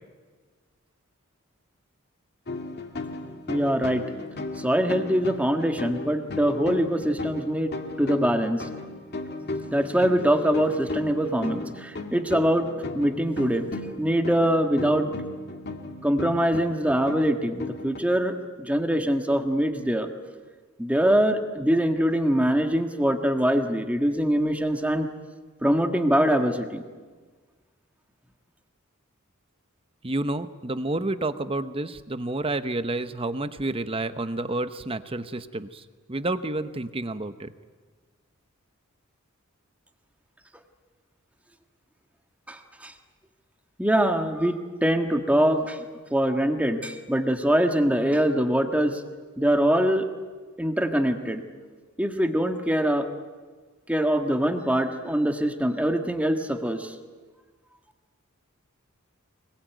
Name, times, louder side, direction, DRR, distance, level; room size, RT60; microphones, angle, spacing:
sound 1, 2.5-18.0, left 2 dB, 50° left, 1.9 m, -36 dB
voice 1, 3.5-4.0 4.6-8.7 9.7-12.7 12.9-13.7 14.0-15.1 16.0-20.1 20.8-25.1 25.6-26.8 42.5-42.9 43.8-45.8 46.1-49.0 49.4-50.1 50.6-51.4 52.0-53.1 53.9-56.9, equal, 5° right, 6 dB, 1.6 m, -23 dB
voice 2, 30.0-35.8 36.1-37.5, right 2 dB, 25° right, 11 dB, 1.0 m, -29 dB
24.5 x 22.0 x 9.3 m, 1.4 s
head